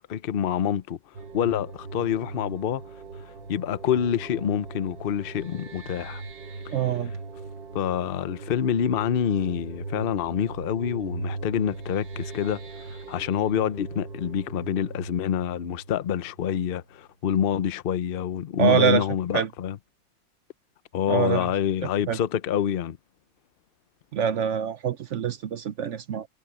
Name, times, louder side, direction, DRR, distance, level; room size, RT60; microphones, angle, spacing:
voice 1, 0.1-1.0 1.3-2.8 3.5-6.2 7.7-12.6 12.9-19.8 20.9-23.0, left 9 dB, 65° left, 0.5 m, -26 dB
sound 1, 1.1-16.6, right 3 dB, 90° right, 2.5 m, -39 dB
voice 2, 6.7-7.1 18.6-19.0 19.3-19.5 21.1-21.5 22.1-22.2 24.1-26.3, right 8 dB, 65° right, 0.7 m, -24 dB
omnidirectional pair, 2.0 m